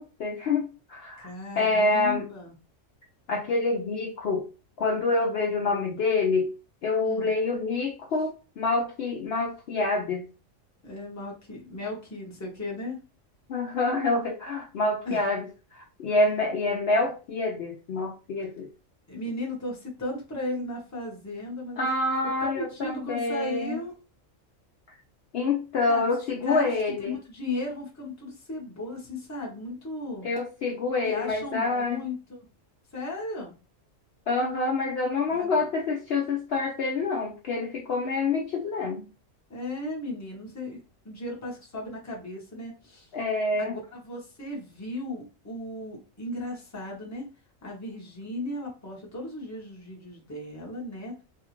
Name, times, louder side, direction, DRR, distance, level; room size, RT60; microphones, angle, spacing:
voice 1, 0.0-1.3 1.6-2.3 3.3-4.5 4.8-6.5 6.8-10.3 13.5-15.4 15.7-18.7 21.8-23.8 25.3-27.1 30.2-32.0 34.3-39.1 43.1-43.8, left 3 dB, 60° left, 0 dB, 0.7 m, -27 dB
voice 2, 1.2-2.5 7.0-7.3 10.8-13.0 15.0-15.2 19.1-21.9 22.4-23.9 25.9-26.1 26.4-30.3 31.0-32.4 32.9-33.5 35.3-35.6 39.5-43.1 43.6-47.3 47.6-51.1, left 2 dB, 15° left, -2 dB, 0.7 m, -36 dB
2.8 x 2.4 x 2.9 m, 0.32 s
omnidirectional pair, 1.4 m